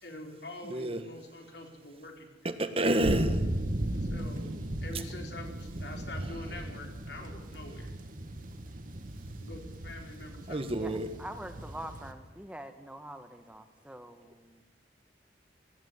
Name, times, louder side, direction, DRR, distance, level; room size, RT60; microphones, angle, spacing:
voice 1, 0.0-2.5 4.0-4.5 4.8-7.9 9.4-10.7, left 2 dB, 65° left, 2 dB, 4.5 m, -45 dB
voice 2, 0.7-1.0 2.4-3.5 10.5-11.1, right 1 dB, 30° right, 9 dB, 1.4 m, -29 dB
sound 1, 3.0-12.1, right 1 dB, 50° right, 1.6 m, -37 dB
voice 3, 10.8-14.6, right 1 dB, 5° right, 7 dB, 1.2 m, -45 dB
19.0 x 17.0 x 9.6 m, 1.2 s
head